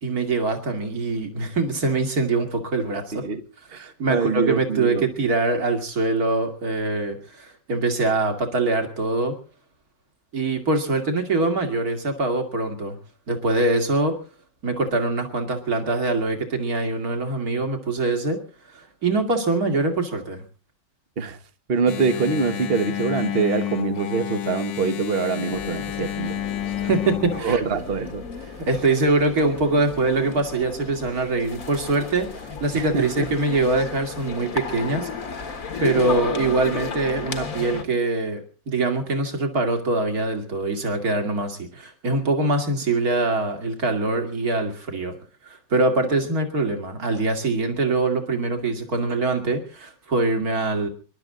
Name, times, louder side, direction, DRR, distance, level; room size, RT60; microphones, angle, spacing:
voice 1, 0.0-3.2 3.8-9.3 10.3-13.0 13.3-14.2 14.6-18.4 18.7-20.4 26.7-27.6 28.6-35.1 35.8-45.2 45.4-50.9, right 2 dB, 55° right, 2.9 m, -23 dB
voice 2, 3.7-5.1 21.2-21.4 21.7-26.4 27.4-28.2 32.7-33.3, right 5 dB, 35° right, 1.4 m, -24 dB
Engine, 21.9-27.4, left 11 dB, 80° left, 1.8 m, -30 dB
sound 1, 25.5-37.8, left 5 dB, 50° left, 1.9 m, -34 dB
26.5 x 12.0 x 3.8 m
omnidirectional pair, 1.9 m